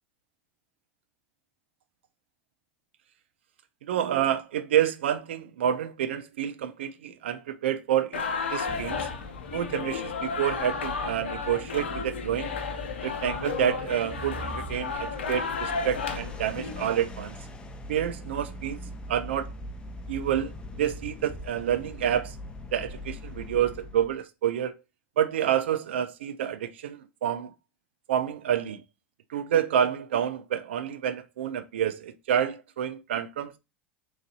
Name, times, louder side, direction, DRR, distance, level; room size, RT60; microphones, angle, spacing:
voice 1, 3.9-8.2 8.5-9.1 9.5-12.5 13.0-17.3 17.9-18.8 19.1-19.5 20.1-22.4 22.7-24.7 25.2-27.5 28.1-28.8 29.3-33.6, right 10 dB, 80° right, 0.3 m, -28 dB
sound 1, 8.1-16.9, left 5 dB, 85° left, 0.7 m, -33 dB
sound 2, 8.7-24.2, left 1 dB, 15° left, 0.6 m, -41 dB
3.7 x 3.0 x 2.7 m
hypercardioid pair, 85°, 6 cm